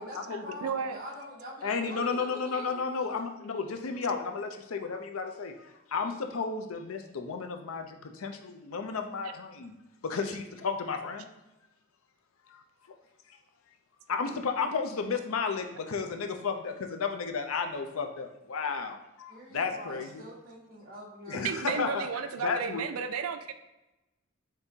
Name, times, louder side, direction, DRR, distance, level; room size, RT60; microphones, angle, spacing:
voice 1, 0.0-2.9 19.3-22.0, left 1 dB, 45° right, -5 dB, 1.3 m, -44 dB
voice 2, 0.6-1.0 21.4-23.6, right 6 dB, 85° right, 9 dB, 0.4 m, -33 dB
voice 3, 1.6-9.7 10.0-11.3 12.5-12.6 13.3-13.4 14.1-20.2 21.3-22.1 22.4-22.8, left 5 dB, 70° left, 5 dB, 0.5 m, -33 dB
5.3 x 3.5 x 2.7 m, 1.0 s
head